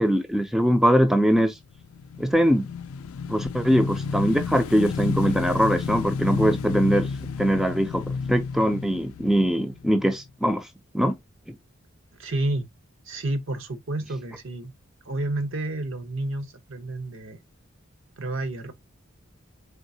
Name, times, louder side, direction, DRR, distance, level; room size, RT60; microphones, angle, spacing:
voice 1, 0.0-1.6 2.2-2.7 3.3-7.1 7.4-8.0 8.3-10.7 10.9-11.2, equal, ahead, 0.3 m, -22 dB
Motorcycle / Engine, 1.7-10.2, left 5 dB, 80° left, 0.4 m, -31 dB
voice 2, 12.2-12.7 13.1-14.7 15.1-17.4 18.2-18.7, right 2 dB, 65° right, 0.7 m, -30 dB
3.9 x 3.6 x 2.6 m
head